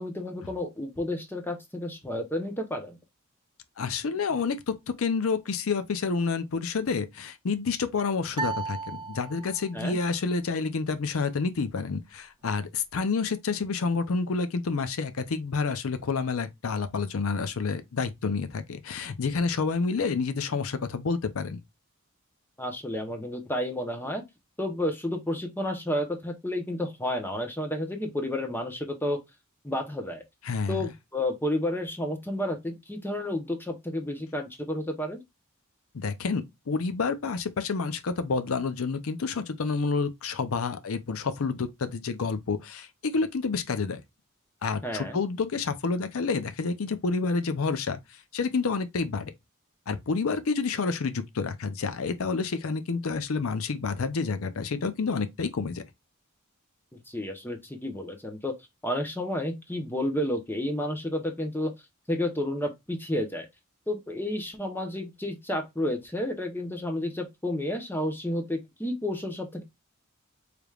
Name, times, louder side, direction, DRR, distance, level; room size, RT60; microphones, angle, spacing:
voice 1, 0.0-3.0 9.7-10.0 22.6-24.2 24.6-29.2 29.6-30.2 30.7-35.2 44.8-45.2 57.1-58.5 58.8-61.7 62.1-63.5 63.9-69.6, left 1 dB, 10° left, 0.8 m, -31 dB
voice 2, 3.8-21.6 30.4-30.9 35.9-44.0 44.6-49.3 49.9-55.8, left 4 dB, 75° left, 0.6 m, -29 dB
sound 1, 8.3-9.8, right 5 dB, 20° right, 0.4 m, -34 dB
4.9 x 3.3 x 2.4 m
head